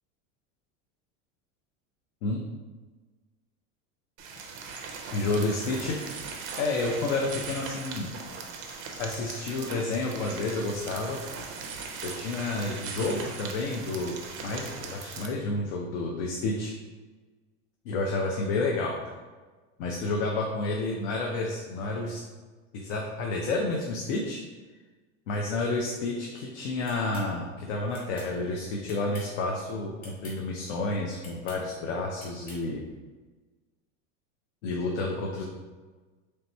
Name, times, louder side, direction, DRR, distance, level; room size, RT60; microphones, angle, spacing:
sound 1, 4.2-15.3, right 5 dB, 35° right, 0.4 m, -39 dB
voice 1, 5.1-6.0 6.6-8.1 9.0-11.2 12.0-16.7 17.9-18.9 19.8-22.2 22.7-24.4 25.3-32.8 34.6-35.4, left 2 dB, 70° left, 0 dB, 0.6 m, -30 dB
sound 2, 26.9-27.3 27.9-28.3 28.9-29.4 30.0-30.4 31.2-31.6 32.2-32.6, equal, 25° left, 1.5 m, -47 dB
3.3 x 2.9 x 4.1 m, 1.3 s
cardioid pair, 175°, 37 cm